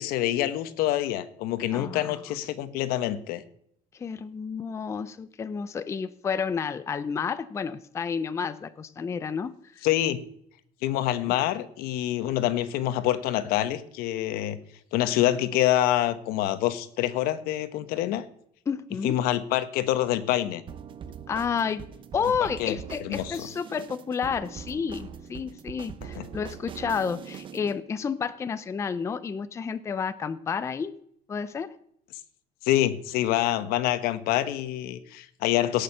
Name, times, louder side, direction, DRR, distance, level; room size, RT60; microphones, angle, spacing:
voice 1, 0.0-3.4 9.8-10.2 10.8-14.6 14.9-18.2 19.0-20.6 22.6-22.8 23.0-23.5 26.1-26.3 32.6-35.8, left 13 dB, 80° left, 12 dB, 1.1 m, -26 dB
voice 2, 1.7-2.2 3.9-9.8 18.7-19.2 21.3-21.8 22.1-30.9 31.3-31.7, left 6 dB, 20° left, 13 dB, 0.5 m, -31 dB
sound 1, 20.7-27.8, right 8 dB, 35° right, 0.7 m, -42 dB
17.0 x 6.7 x 5.6 m, 0.68 s
cardioid pair, 165°, 16 cm